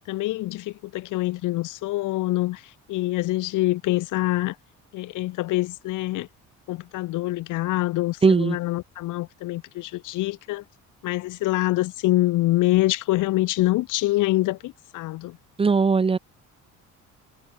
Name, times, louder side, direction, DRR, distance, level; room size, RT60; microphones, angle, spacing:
voice 1, 0.1-4.6 4.9-6.3 6.7-10.6 11.0-15.4, left 18 dB, 75° left, 1.0 m, -25 dB
voice 2, 8.2-8.6 15.6-16.2, right 5 dB, 20° right, 0.6 m, -19 dB
cardioid pair, 130°, 31 cm